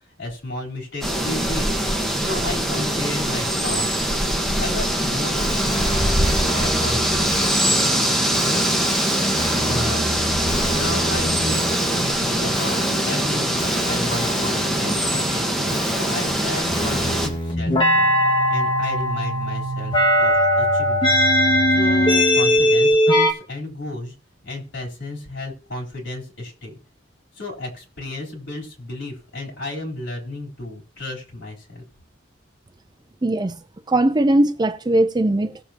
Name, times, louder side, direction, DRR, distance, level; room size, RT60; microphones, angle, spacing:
voice 1, 0.2-1.7 2.2-6.0 6.5-7.9 8.4-8.7 9.7-10.3 10.7-11.6 11.9-15.5 15.8-18.1 18.5-24.1 24.4-26.7 27.3-31.8, left 2 dB, 75° left, 3.8 m, -33 dB
sound 1, 1.0-17.3, right 1 dB, ahead, 1.6 m, -22 dB
sound 2, 5.4-23.3, equal, 25° left, 1.8 m, -22 dB
voice 2, 33.2-35.6, right 1 dB, 25° right, 0.5 m, -20 dB
18.0 x 7.1 x 2.9 m
head